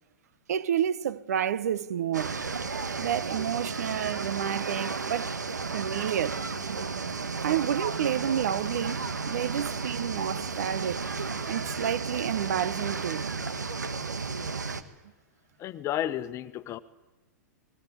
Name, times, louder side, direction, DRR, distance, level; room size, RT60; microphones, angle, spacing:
voice 1, 0.5-2.4 3.0-5.3 5.7-6.4 7.4-13.4, right 10 dB, 65° right, 1.1 m, -30 dB
sound 1, 2.1-14.8, right 4 dB, 80° right, 1.8 m, -33 dB
voice 2, 15.6-16.8, left 12 dB, 30° left, 1.3 m, -33 dB
25.5 x 20.0 x 9.4 m
figure-of-eight pair, 105°, 9 cm